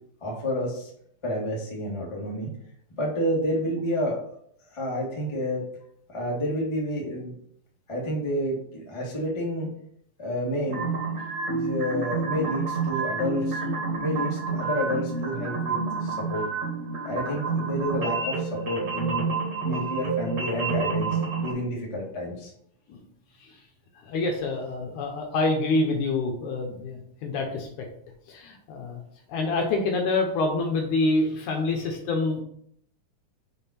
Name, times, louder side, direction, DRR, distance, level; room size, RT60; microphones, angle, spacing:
voice 1, 0.2-0.9 1.2-2.5 3.0-4.2 4.7-5.6 6.1-7.3 7.9-9.7 10.2-10.8 11.5-13.6 14.0-16.5 17.0-19.3 19.6-21.1 21.4-22.5 29.6-29.7, equal, 15° left, -4 dB, 1.0 m, -29 dB
sound 1, 10.7-21.5, right 4 dB, 40° right, 1.7 m, -29 dB
voice 2, 24.1-27.7 28.3-29.0 29.3-32.4, left 2 dB, 70° left, 2 dB, 2.2 m, -26 dB
5.4 x 5.0 x 4.3 m, 0.67 s
omnidirectional pair, 4.0 m